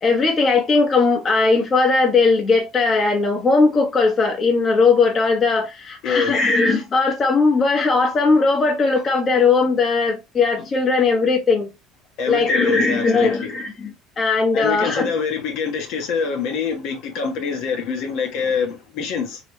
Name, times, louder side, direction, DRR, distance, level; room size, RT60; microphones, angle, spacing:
voice 1, 0.0-11.7 12.3-15.1, left 4 dB, 35° left, 1.1 m, -18 dB
voice 2, 6.0-6.4 12.2-13.6 14.5-19.4, left 5 dB, 70° left, 1.1 m, -25 dB
3.1 x 3.0 x 2.9 m
cardioid pair, 115°, 0 cm